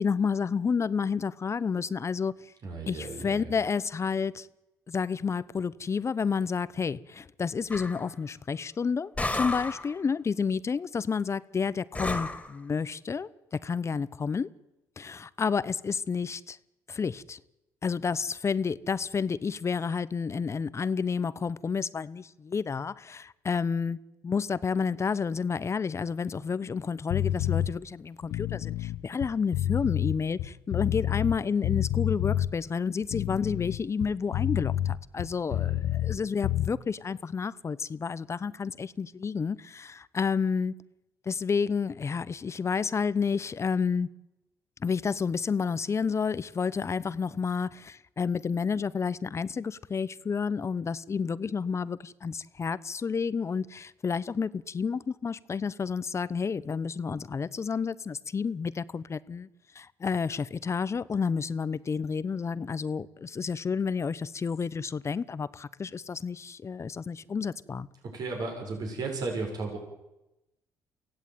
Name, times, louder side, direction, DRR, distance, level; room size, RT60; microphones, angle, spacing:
voice 1, 0.0-2.5 2.9-4.5 4.9-14.5 15.0-16.6 16.9-17.4 17.8-24.0 24.2-40.7 41.2-44.1 44.8-59.5 59.7-67.9, left 5 dB, 35° left, 0.9 m, -30 dB
voice 2, 2.6-3.5 35.5-35.8 68.1-69.8, right 3 dB, 55° right, 6.7 m, -34 dB
sound 1, 7.7-8.1 9.2-9.9 11.9-12.5, left 2 dB, 15° left, 2.9 m, -32 dB
sound 2, 27.1-27.7 28.2-31.4 31.6-32.5 33.0-36.2 36.4-36.7, left 12 dB, 80° left, 0.8 m, -28 dB
24.0 x 16.5 x 9.3 m
supercardioid pair, 70°, 8 cm